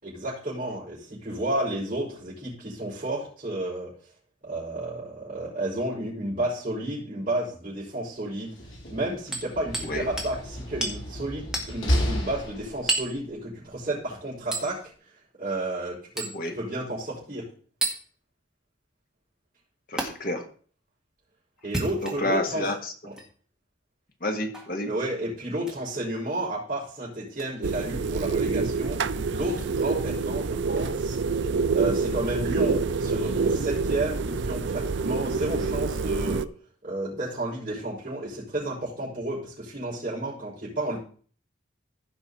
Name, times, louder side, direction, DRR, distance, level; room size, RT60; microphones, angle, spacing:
voice 1, 0.0-3.9 4.4-8.5 8.9-14.9 15.4-17.4 21.6-22.7 23.0-23.1 24.9-31.2 31.7-36.5 36.8-41.0, right 1 dB, 40° right, -7 dB, 5.4 m, -32 dB
Slam, 8.4-13.1, equal, 85° left, 3.5 m, -32 dB
Hammer, 9.3-9.9 10.2-10.3 10.8-11.0 11.5-11.7 12.9-13.2 14.5-14.7 16.2-16.4 17.8-18.0 20.0-20.1 21.6-22.4 23.1-23.3 24.5-24.7 25.6-25.8 27.4-27.5, right 2 dB, 5° right, 2.0 m, -30 dB
voice 2, 19.9-20.5 22.0-22.9 24.2-24.9, left 1 dB, 45° left, 4 dB, 1.6 m, -29 dB
sound 1, 27.6-36.5, right 4 dB, 70° right, 0.5 m, -27 dB
15.5 x 5.6 x 4.2 m, 0.43 s
head